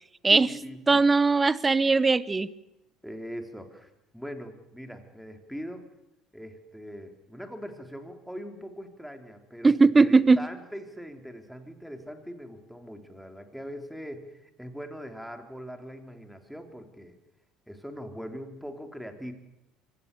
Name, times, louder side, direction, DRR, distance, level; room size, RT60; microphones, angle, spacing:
voice 1, 0.3-1.0 3.0-5.8 6.3-17.2 17.7-19.3, equal, ahead, 5 dB, 3.7 m, -41 dB
voice 2, 0.9-2.5 9.6-10.5, right 3 dB, 20° right, 19 dB, 1.0 m, -20 dB
24.5 x 16.5 x 7.0 m, 0.91 s
hypercardioid pair, 75°, 0 cm